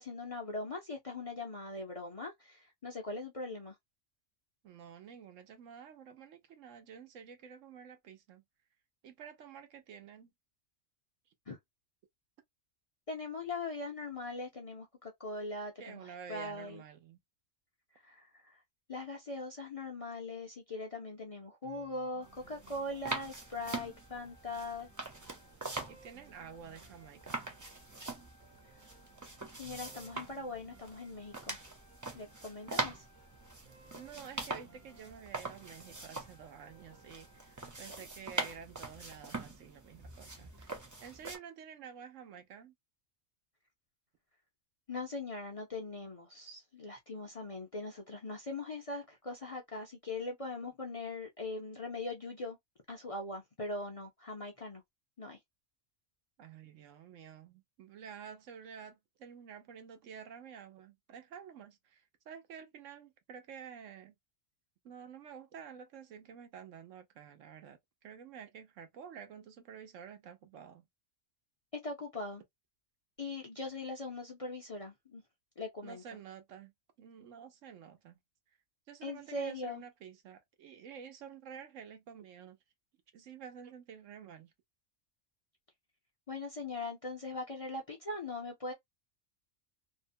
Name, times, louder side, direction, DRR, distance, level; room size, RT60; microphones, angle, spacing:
voice 1, 0.0-3.8 11.5-11.6 13.1-16.8 18.0-18.6 18.9-24.9 29.6-31.6 32.1-33.0 44.9-52.6 52.9-54.8 55.2-55.4 71.8-72.4 73.2-75.2 75.6-76.0 79.0-79.8 86.3-88.7, left 2 dB, 40° left, 0.5 m, -41 dB
voice 2, 4.6-8.4 9.0-10.3 15.8-17.2 25.9-27.5 33.9-42.7 56.4-64.1 64.8-70.8 75.8-76.7 77.0-78.2 78.9-82.6 83.1-84.5, right 7 dB, 80° right, 1.1 m, -50 dB
sound 1, 21.6-37.7, right 3 dB, 45° right, 0.8 m, -61 dB
sound 2, 22.2-41.4, right 2 dB, 25° right, 0.4 m, -43 dB
2.8 x 2.1 x 2.6 m
omnidirectional pair, 1.3 m